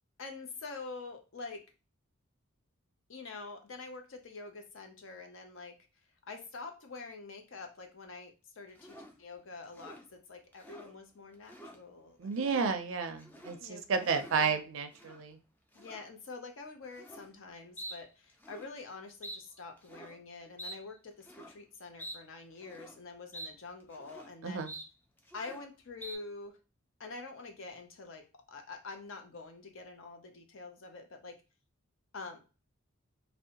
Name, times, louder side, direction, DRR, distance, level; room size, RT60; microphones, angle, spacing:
voice 1, 0.2-1.6 3.1-5.7 6.3-12.7 13.6-14.6 15.7-24.6 25.3-26.6 27.0-31.4 32.1-32.4, left 3 dB, 60° left, 5 dB, 0.5 m, -46 dB
sound 1, 8.8-9.2 9.6-10.1 10.5-10.9 11.3-11.8 12.3-12.7 13.1-13.6 13.9-14.4 14.9-15.2 15.7-16.1 16.9-17.3 17.8-18.0 18.3-18.7 19.2-19.4 19.8-20.2 20.6-20.8 21.2-21.5 22.0-22.2 22.6-23.0 23.3-23.5 23.8-24.3 24.7-24.9 25.2-25.7 26.0-26.2, right 1 dB, 10° left, 0.3 m, -47 dB
voice 2, 12.2-15.4 24.4-24.7, right 5 dB, 65° right, 7 dB, 0.4 m, -32 dB
2.6 x 2.1 x 2.8 m, 0.32 s
head